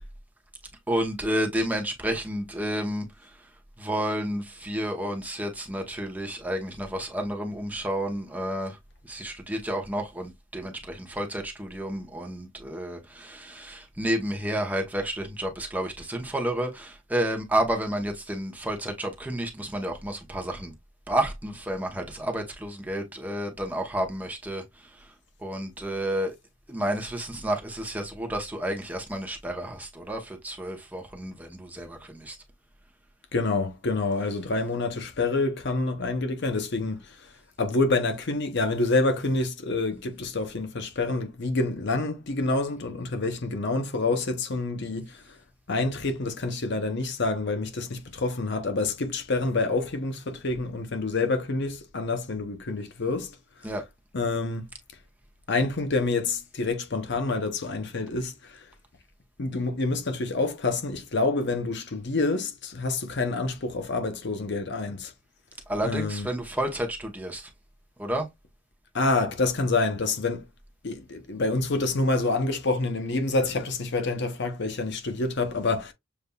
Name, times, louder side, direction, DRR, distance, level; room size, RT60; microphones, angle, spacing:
voice 1, 0.9-3.3 3.8-8.8 9.1-20.7 21.1-24.6 25.4-26.3 26.7-32.4 53.6-53.8 65.7-67.5 68.0-68.3, right 1 dB, 10° right, 0.9 m, -30 dB
voice 2, 33.3-37.3 37.6-45.4 45.7-53.4 53.6-53.7 54.1-54.7 55.5-58.7 59.4-65.1 65.8-66.3 68.9-70.5 70.8-75.9, left 3 dB, 55° left, 0.7 m, -27 dB
6.9 x 2.5 x 2.2 m
head